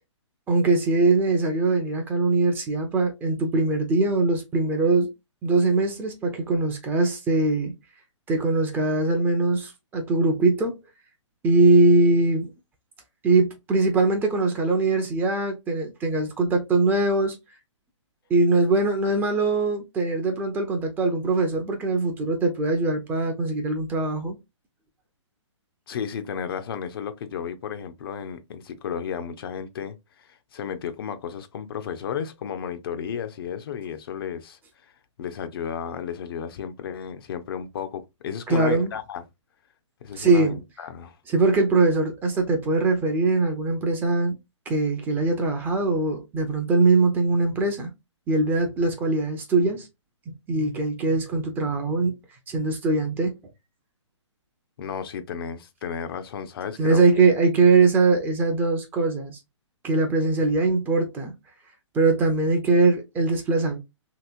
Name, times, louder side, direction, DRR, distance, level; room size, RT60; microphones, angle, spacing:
voice 1, 0.5-5.1 5.4-7.7 8.3-10.8 11.4-12.5 13.2-17.4 18.3-24.3 38.5-38.9 40.1-40.6 41.3-44.4 44.7-47.9 48.3-49.9 50.5-52.1 52.5-53.3 56.8-59.4 59.8-61.3 61.9-63.8, right 3 dB, 10° right, 0.5 m, -22 dB
voice 2, 25.9-34.9 35.2-39.3 40.0-41.2 54.8-57.0, left 7 dB, 50° left, 0.5 m, -33 dB
2.9 x 2.9 x 2.4 m
hypercardioid pair, 140°, 16 cm